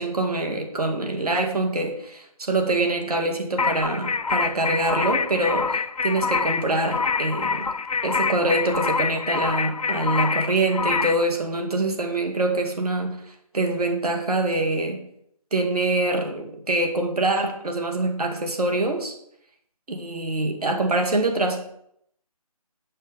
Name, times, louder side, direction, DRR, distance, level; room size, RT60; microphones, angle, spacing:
voice 1, 0.0-7.7 8.0-15.0 15.5-19.1 19.9-21.6, right 2 dB, 80° right, 3 dB, 2.1 m, -25 dB
sound 1, 3.6-11.2, left 5 dB, 75° left, 0.6 m, -26 dB
7.8 x 5.5 x 5.3 m, 0.71 s
figure-of-eight pair, 165°, 19 cm